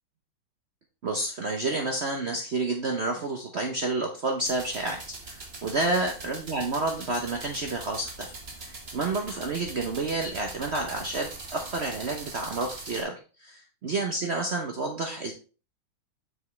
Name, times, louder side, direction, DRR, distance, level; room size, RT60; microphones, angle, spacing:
voice 1, 1.0-5.0 5.3-8.3 8.6-15.3, right 2 dB, 85° right, 2 dB, 0.5 m, -30 dB
sound 1, 4.5-13.0, right 3 dB, 35° right, 1.4 m, -42 dB
7.2 x 6.3 x 3.1 m, 0.35 s
omnidirectional pair, 2.3 m